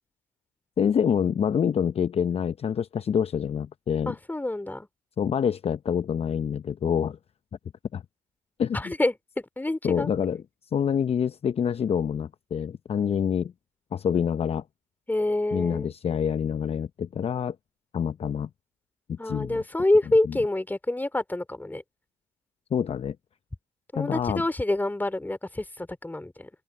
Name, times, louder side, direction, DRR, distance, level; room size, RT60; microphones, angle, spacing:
voice 1, 0.8-4.1 5.2-7.2 7.9-8.0 8.6-8.9 9.8-10.4 10.7-13.5 13.9-14.6 15.5-17.6 17.9-18.5 19.1-19.6 20.3-20.4 22.7-23.2 23.9-24.4, left 8 dB, 40° left, 0.8 m, -26 dB
voice 2, 4.1-4.9 8.7-10.1 15.1-15.9 19.2-21.8 23.9-26.5, left 2 dB, 10° left, 3.4 m, -27 dB
open air
hypercardioid pair, 60°, 15 cm